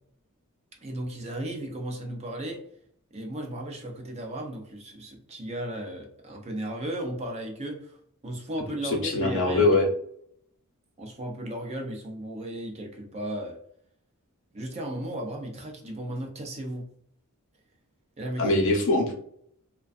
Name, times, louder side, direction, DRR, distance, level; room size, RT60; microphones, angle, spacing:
voice 1, 0.8-2.6 3.1-8.0 8.2-9.7 11.0-13.6 14.5-16.9 18.2-18.6, right 1 dB, 30° right, 1 dB, 0.5 m, -35 dB
voice 2, 8.8-9.9 18.4-19.1, left 2 dB, 60° left, 1 dB, 0.6 m, -22 dB
2.5 x 2.2 x 2.3 m, 0.66 s
head